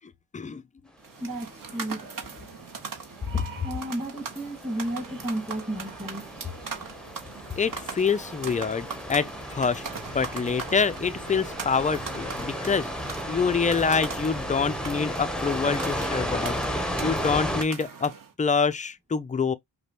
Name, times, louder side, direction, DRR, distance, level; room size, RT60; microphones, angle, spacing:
sound 1, 1.0-18.3, right 5 dB, 45° right, 1.1 m, -40 dB
voice 1, 1.2-2.1 2.3-2.5 3.6-6.3 12.5-12.7, right 1 dB, 15° right, 1.8 m, -33 dB
sound 2, 1.5-17.6, equal, ahead, 0.8 m, -34 dB
voice 2, 7.6-9.8 10.1-12.9 13.3-16.6 17.0-18.1 18.4-19.5, left 5 dB, 15° left, 0.4 m, -26 dB
sound 3, 9.8-14.9, right 6 dB, 80° right, 1.0 m, -46 dB
5.0 x 2.2 x 2.9 m
supercardioid pair, 50°, 47 cm